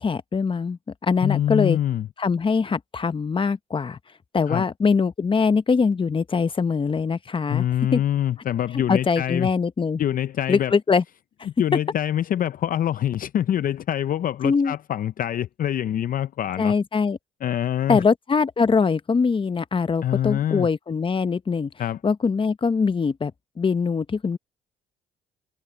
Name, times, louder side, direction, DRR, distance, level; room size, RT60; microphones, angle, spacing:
voice 1, 0.0-1.8 2.2-4.0 4.3-7.6 7.9-8.0 8.9-10.0 10.5-11.0 14.4-14.7 16.6-17.2 17.9-21.7 22.0-23.3 23.6-24.4, left 5 dB, 30° left, 0.9 m, -22 dB
voice 2, 1.2-2.1 4.5-4.6 7.5-9.5 10.0-10.7 11.5-16.7 17.4-18.0 20.0-20.7 21.8-22.0, left 11 dB, 50° left, 0.5 m, -25 dB
cardioid pair, 80°, 18 cm